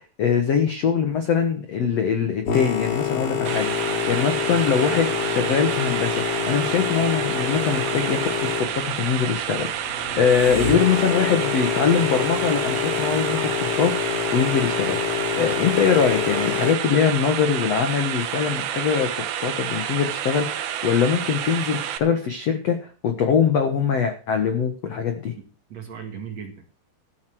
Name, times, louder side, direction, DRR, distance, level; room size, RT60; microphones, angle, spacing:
voice 1, 0.0-8.2 8.6-25.3, left 7 dB, 80° left, 6 dB, 1.4 m, -23 dB
Boat Water vehicle, 2.4-16.7, left 8 dB, 60° left, 4.4 m, -27 dB
sound 1, 3.5-22.0, right 10 dB, 85° right, 1.7 m, -29 dB
voice 2, 25.4-26.7, right 7 dB, 50° right, 4 dB, 2.2 m, -38 dB
14.0 x 7.8 x 6.3 m, 0.37 s
omnidirectional pair, 5.3 m